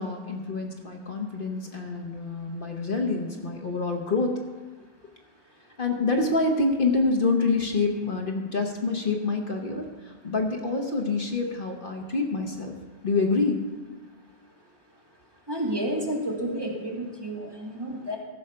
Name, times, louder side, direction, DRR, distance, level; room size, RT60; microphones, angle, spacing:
voice 1, 0.0-4.3 5.8-12.7 13.0-13.6, left 3 dB, 55° left, 2 dB, 1.1 m, -27 dB
voice 2, 15.5-18.2, right 1 dB, 20° right, -2 dB, 1.7 m, -30 dB
14.0 x 6.3 x 5.5 m, 1.3 s
omnidirectional pair, 1.1 m